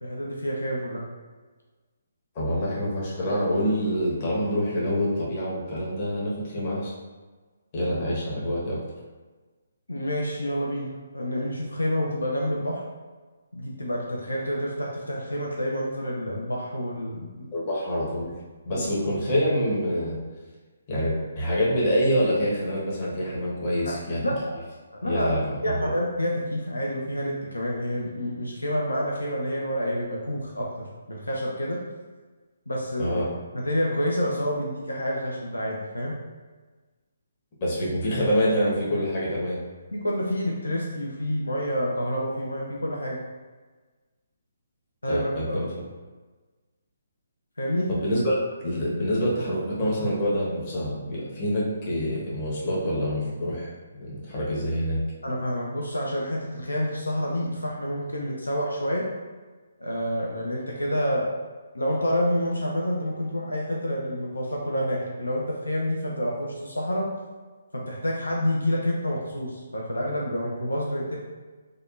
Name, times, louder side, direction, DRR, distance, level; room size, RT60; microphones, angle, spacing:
voice 1, 0.0-1.0 9.9-10.9 11.1-12.8 13.5-17.5 18.7-18.9 23.8-24.0 24.2-24.6 25.0-25.3 25.6-31.8 32.7-33.2 33.5-36.1 39.9-43.2 45.0-45.6 47.6-47.9 55.2-59.1 59.8-61.3 61.7-67.1 67.7-71.2, equal, 85° left, -3 dB, 0.5 m, -28 dB
voice 2, 2.3-6.9 7.7-8.8 17.5-18.3 18.6-20.2 20.9-24.2 25.0-25.9 33.0-33.3 37.6-39.6 45.1-45.7 47.9-55.0, equal, 40° left, -6 dB, 1.0 m, -26 dB
3.4 x 2.3 x 2.4 m, 1.3 s
figure-of-eight pair, 140°, 0 cm